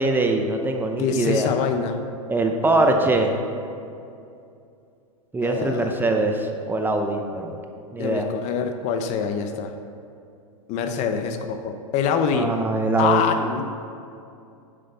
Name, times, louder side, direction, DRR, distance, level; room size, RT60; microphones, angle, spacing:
voice 1, 0.0-1.5 2.3-3.3 5.3-7.6 7.9-8.3 12.3-13.2, right 2 dB, 10° right, 4 dB, 0.7 m, -22 dB
voice 2, 1.0-2.0 2.7-3.0 5.4-6.1 8.0-9.7 10.7-12.5 13.0-13.7, left 6 dB, 40° left, 6 dB, 0.7 m, -25 dB
7.5 x 6.5 x 5.6 m, 2.6 s
hypercardioid pair, 110°, 17 cm